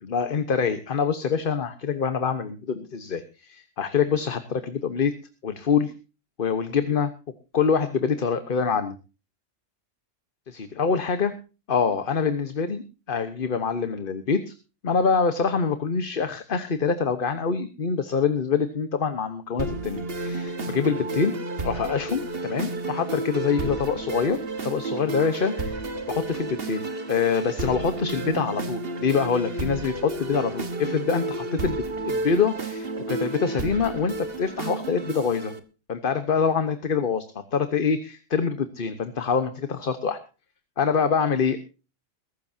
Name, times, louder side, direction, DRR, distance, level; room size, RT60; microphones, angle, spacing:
voice 1, 0.0-5.1 5.4-5.9 6.4-7.1 7.5-8.9 10.5-11.3 11.7-14.5 14.8-21.3 21.6-25.8 26.1-35.5 35.9-37.2 37.5-40.2 40.8-41.6, left 6 dB, 50° left, 10 dB, 1.2 m, -25 dB
sound 1, 19.6-35.6, right 2 dB, 50° right, 1.7 m, -31 dB
22.0 x 13.0 x 2.7 m, 0.33 s
omnidirectional pair, 1.3 m